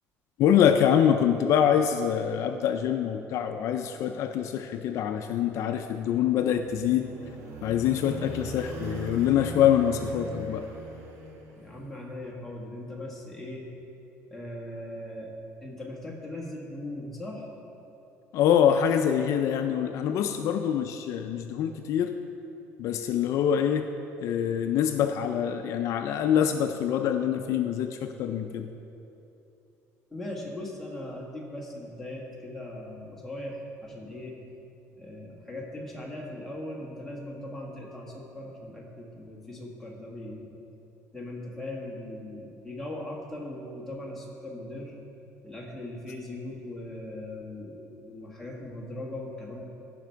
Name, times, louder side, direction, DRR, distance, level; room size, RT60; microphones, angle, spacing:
voice 1, 0.4-7.1 7.6-10.6 18.3-22.1 22.8-23.9 24.2-28.7, left 9 dB, 60° left, 6 dB, 0.4 m, -25 dB
sound 1, 6.2-11.9, right 2 dB, 60° right, 1.4 m, -41 dB
voice 2, 11.6-13.7 14.3-15.3 15.6-17.5 30.1-34.4 35.0-40.5 41.1-44.9 45.4-49.6, left 1 dB, 5° left, -4 dB, 1.6 m, -39 dB
15.5 x 5.8 x 4.6 m, 2.9 s
cardioid pair, 160°, 6 cm